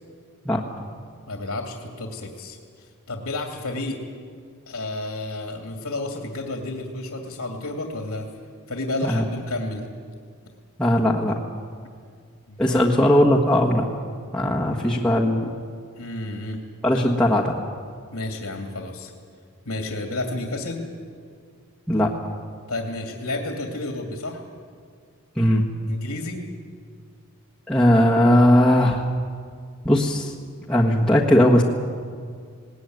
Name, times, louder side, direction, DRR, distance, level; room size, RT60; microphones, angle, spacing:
voice 1, 1.3-2.6 3.1-4.0 4.7-8.3 8.7-9.9 12.5-12.9 16.0-16.6 16.9-17.1 18.1-19.1 19.7-20.8 22.7-24.4 25.9-26.4, left 2 dB, 85° left, 2 dB, 2.5 m, -31 dB
voice 2, 10.8-11.3 12.6-13.8 14.3-15.5 16.8-17.5 21.9-22.1 25.4-25.6 27.7-29.1 29.8-30.3 30.7-31.6, left 1 dB, 5° left, -6 dB, 1.5 m, -18 dB
19.5 x 19.0 x 9.4 m, 2.1 s
head